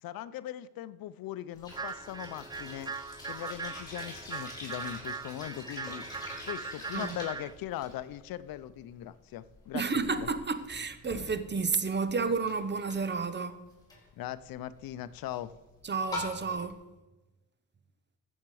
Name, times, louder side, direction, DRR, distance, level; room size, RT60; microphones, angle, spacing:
voice 1, 0.0-2.9 3.3-6.1 6.4-10.3 14.2-15.5, left 13 dB, 85° left, 0.6 m, -40 dB
sound 1, 1.5-16.7, left 2 dB, 10° left, 4.2 m, -46 dB
sound 2, 1.7-7.5, right 4 dB, 15° right, 0.4 m, -40 dB
voice 2, 9.7-13.6 15.8-16.8, right 4 dB, 30° right, 0.9 m, -31 dB
14.5 x 7.3 x 4.8 m
cardioid pair, 100°, 34 cm